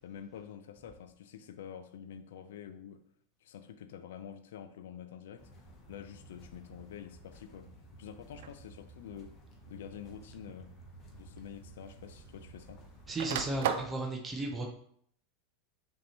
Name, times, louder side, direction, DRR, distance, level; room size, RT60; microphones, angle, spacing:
voice 1, 0.0-3.0 3.4-5.5 5.9-7.7 8.0-9.4 9.7-10.7 11.1-12.8, left 9 dB, 85° left, 10 dB, 0.4 m, -47 dB
sound 1, 5.4-13.7, right 2 dB, 25° left, 0.8 m, -54 dB
sound 2, 8.3-8.7 9.7-9.8 11.2-11.3 11.5-12.6 12.9-14.0, right 9 dB, 70° right, 0.3 m, -35 dB
voice 2, 13.1-14.7, right 2 dB, 15° right, 1 dB, 0.5 m, -34 dB
5.2 x 2.8 x 2.9 m, 0.65 s
supercardioid pair, 155°, 0 cm